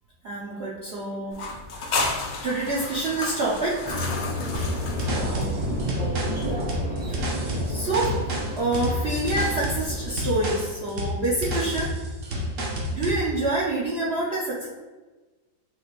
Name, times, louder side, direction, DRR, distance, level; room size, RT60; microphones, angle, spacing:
voice 1, 0.2-1.4 1.7-4.2 5.1-5.5 7.1-7.3 7.6-8.1 8.6-11.9 12.9-14.7, right 2 dB, 75° right, -6 dB, 0.5 m, -27 dB
sound 1, 1.3-5.9, left 3 dB, 60° left, 0.9 m, -32 dB
sound 2, 3.8-10.1, equal, 10° right, 0.4 m, -31 dB
sound 3, 4.5-13.2, equal, 55° right, 1.0 m, -29 dB
6.2 x 3.1 x 2.4 m, 1.2 s
omnidirectional pair, 2.0 m